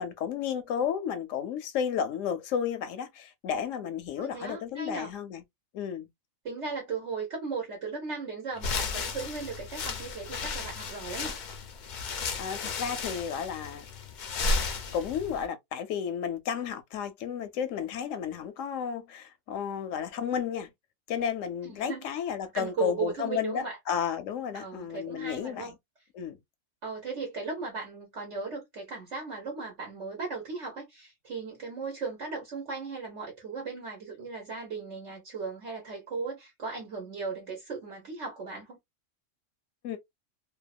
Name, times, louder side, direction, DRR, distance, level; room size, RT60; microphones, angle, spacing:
voice 1, 0.0-5.4 5.7-6.1 12.4-13.9 14.9-20.7 21.1-25.7 26.1-26.4 39.8-40.0, left 8 dB, 85° left, 0.9 m, -32 dB
voice 2, 4.2-5.1 6.4-11.4 21.6-22.0 22.5-23.8 24.5-25.7 26.8-38.8, right 4 dB, 70° right, 1.3 m, -37 dB
sound 1, 8.6-15.5, left 3 dB, 60° left, 0.5 m, -34 dB
2.9 x 2.1 x 2.3 m
omnidirectional pair, 1.3 m